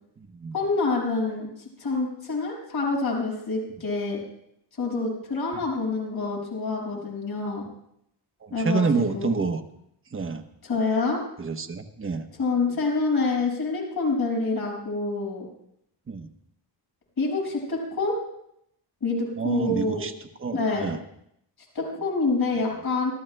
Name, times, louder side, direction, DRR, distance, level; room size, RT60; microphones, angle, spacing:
voice 1, 0.5-1.5 1.8-4.2 4.8-7.6 8.5-9.3 10.6-11.2 12.4-15.5 17.2-18.2 19.0-20.0 20.5-20.9 21.7-23.1, left 3 dB, 55° left, -2 dB, 6.0 m, -26 dB
voice 2, 8.4-9.6 10.1-10.4 11.4-12.2 16.1-16.3 19.4-20.1 20.4-21.0, right 4 dB, 30° right, 5 dB, 1.0 m, -27 dB
27.0 x 13.5 x 2.2 m, 0.75 s
wide cardioid pair, 125°, 44 cm